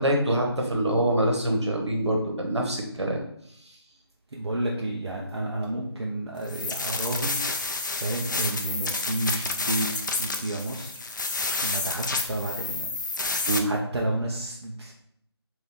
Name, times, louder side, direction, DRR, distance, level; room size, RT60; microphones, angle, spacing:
voice 1, 0.0-3.2 13.5-13.7, right 1 dB, 90° right, 1 dB, 1.2 m, -25 dB
voice 2, 4.3-7.4 8.0-11.0 11.6-12.9 13.6-14.9, right 1 dB, 70° right, -2 dB, 0.6 m, -31 dB
sound 1, 6.4-13.6, left 3 dB, 45° left, 0.4 m, -30 dB
3.9 x 2.6 x 3.4 m, 0.72 s
figure-of-eight pair, 165°, 14 cm